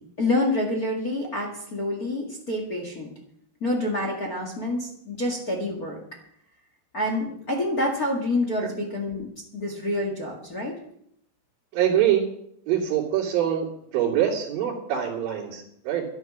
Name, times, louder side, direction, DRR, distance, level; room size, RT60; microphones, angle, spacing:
voice 1, 0.0-3.1 3.6-6.0 6.9-9.3 9.5-10.8, left 1 dB, 35° left, 1 dB, 1.5 m, -27 dB
voice 2, 11.7-12.2 12.7-13.7 13.9-16.0, right 10 dB, 60° right, -8 dB, 4.3 m, -24 dB
13.0 x 11.0 x 6.2 m, 0.71 s
omnidirectional pair, 4.7 m